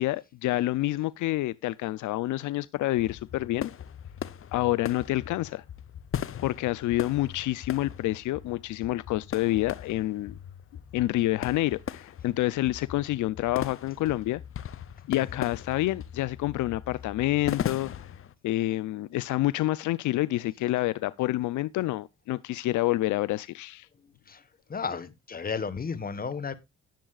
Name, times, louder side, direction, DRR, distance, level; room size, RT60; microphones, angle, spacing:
voice 1, 0.0-3.7 4.5-5.6 6.4-10.4 10.9-14.4 15.1-17.9 18.4-23.9, left 16 dB, 80° left, 0.5 m, -28 dB
sound 1, 3.0-18.3, left 9 dB, 45° left, 0.7 m, -39 dB
voice 2, 24.7-26.5, left 5 dB, 30° left, 1.2 m, -33 dB
18.0 x 7.2 x 2.3 m
cardioid pair, 90°, 30 cm